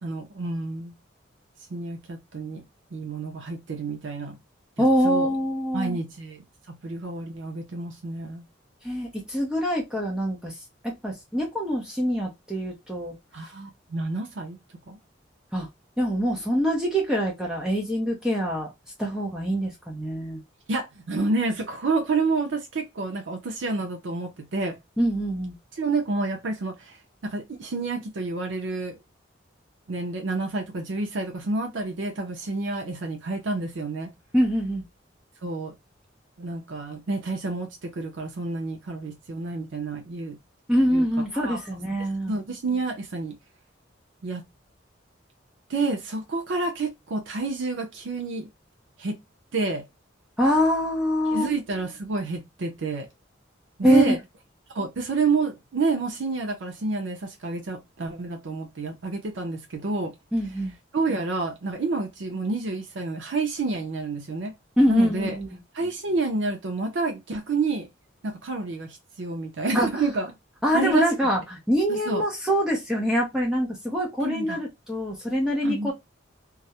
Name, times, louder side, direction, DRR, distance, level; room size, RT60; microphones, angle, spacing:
voice 1, 0.0-1.0 1.7-2.6 2.9-4.4 4.8-5.3 5.7-8.5 13.3-14.6 14.9-15.0 20.7-24.8 25.7-27.0 27.2-29.0 29.9-34.1 35.4-35.7 36.4-40.4 40.9-41.1 41.3-41.6 41.8-41.9 42.3-43.4 44.2-44.4 45.7-48.5 49.0-49.2 49.5-49.8 51.3-53.1 53.8-54.2 54.7-60.1 60.9-64.5 64.9-65.4 65.7-67.9 68.2-70.3 70.7-71.1 71.9-72.2 74.2-74.6 75.6-75.9, right 3 dB, 75° right, 0.5 m, -29 dB
voice 2, 4.8-6.0 8.8-10.5 11.0-13.1 15.5-15.7 16.0-18.7 19.0-20.4 25.0-25.5 34.3-34.8 40.7-42.3 50.4-51.5 53.8-54.2 60.3-60.7 64.8-65.5 69.7-70.0 70.6-75.9, equal, 5° right, 0.5 m, -24 dB
2.3 x 2.0 x 2.7 m
head